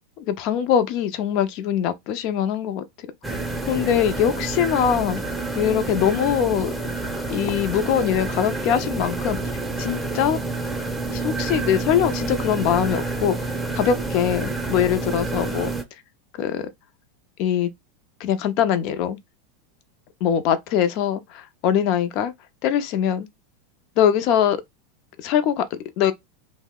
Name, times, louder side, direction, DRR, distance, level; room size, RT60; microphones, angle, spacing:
voice 1, 0.2-5.2 5.5-6.7 7.3-9.4 9.8-10.4 11.1-15.7 16.4-16.7 17.4-17.7 18.2-19.2 20.2-22.3 22.6-23.3 24.0-24.6 25.2-26.1, left 9 dB, 50° left, 0.5 m, -22 dB
sound 1, 3.2-15.8, right 3 dB, 5° right, 0.7 m, -28 dB
2.7 x 2.1 x 3.6 m
hypercardioid pair, 120°, 0 cm